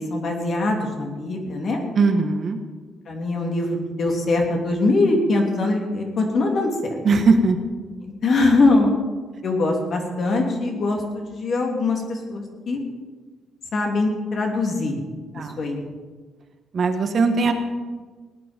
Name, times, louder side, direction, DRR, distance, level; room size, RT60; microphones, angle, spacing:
voice 1, 0.0-1.8 3.1-7.0 8.0-8.9 9.4-12.8 13.7-15.0 15.3-15.8, left 2 dB, 50° left, 1 dB, 2.9 m, -22 dB
voice 2, 1.9-2.6 7.0-7.6 15.4-15.5 16.7-17.5, right 4 dB, 45° right, 6 dB, 1.4 m, -19 dB
18.5 x 10.0 x 5.2 m, 1.4 s
cardioid pair, 125°, 0 cm